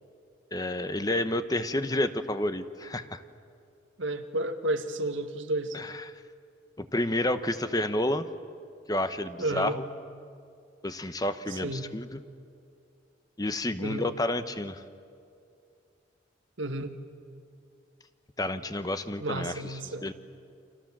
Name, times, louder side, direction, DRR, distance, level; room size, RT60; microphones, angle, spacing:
voice 1, 0.5-3.2 5.7-5.9 6.8-8.3 8.9-9.8 10.8-12.2 13.4-14.8 18.4-19.5 20.0-20.1, left 1 dB, 20° left, 10 dB, 0.9 m, -30 dB
voice 2, 4.0-5.8 9.4-9.8 11.5-11.9 13.8-14.1 16.6-16.9 19.2-20.1, right 1 dB, 85° right, 7 dB, 1.7 m, -32 dB
30.0 x 26.0 x 7.4 m, 2.4 s
head